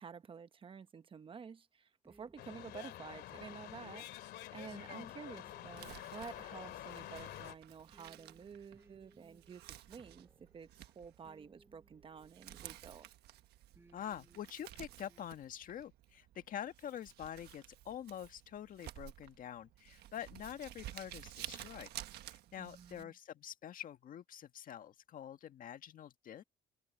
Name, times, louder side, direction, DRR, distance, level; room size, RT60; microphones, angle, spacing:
voice 1, 0.0-13.1 22.6-23.1, right 6 dB, 30° right, 1.0 m, -51 dB
sound 1, 2.0-13.1 13.7-15.3, right 2 dB, 15° right, 7.5 m, -67 dB
sound 2, 2.4-7.6, left 14 dB, 75° left, 2.4 m, -48 dB
voice 2, 4.7-5.1 13.9-21.9 22.2-26.4, left 10 dB, 55° left, 1.7 m, -46 dB
Crumpling crinkling, 5.6-23.0, right 14 dB, 75° right, 1.3 m, -53 dB
cardioid pair, 110°, 17 cm